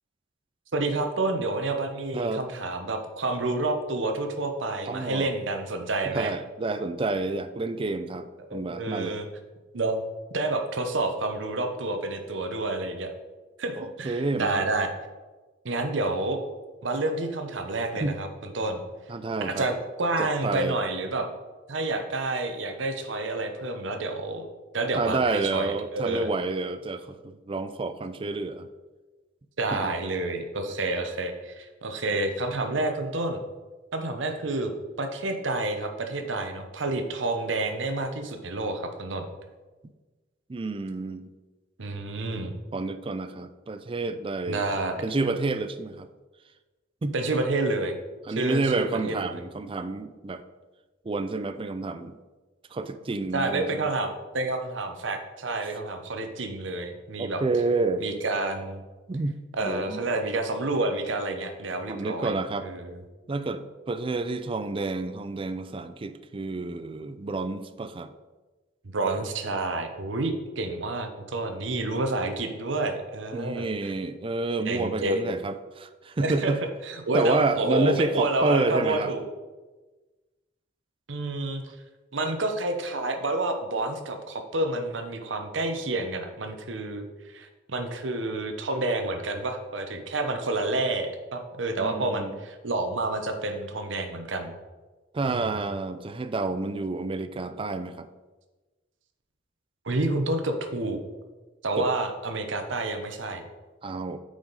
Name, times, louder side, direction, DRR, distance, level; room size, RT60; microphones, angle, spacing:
voice 1, 0.7-6.3 8.5-9.3 9.7-10.0 10.3-13.1 13.6-14.9 15.6-16.4 16.8-18.8 19.4-21.3 21.7-24.5 24.7-26.3 29.6-33.4 33.9-34.7 35.0-39.3 41.8-42.5 44.5-45.0 47.1-48.0 48.4-49.2 53.3-57.4 58.0-58.8 59.6-62.3 62.6-63.0 68.9-73.7 74.6-75.4 76.2-76.5 76.8-79.3 81.1-81.6 82.1-94.6 95.3-95.6 99.8-101.0 101.6-103.4, right 2 dB, 75° right, 6 dB, 0.9 m, -29 dB
voice 2, 2.1-2.4 4.8-5.3 6.1-9.2 13.8-14.7 18.0-18.2 19.1-19.7 20.2-20.8 24.9-28.7 29.7-29.9 30.7-31.0 40.5-41.3 42.7-46.1 47.0-47.2 48.3-50.4 51.0-52.2 52.7-53.9 57.2-58.1 59.1-60.0 61.9-62.7 63.3-68.1 73.3-76.6 77.1-79.1 91.8-92.4 95.1-98.1 101.8-101.9 103.8-104.2, right 3 dB, 30° right, 11 dB, 0.4 m, -29 dB
9.0 x 4.9 x 4.0 m, 1.2 s
head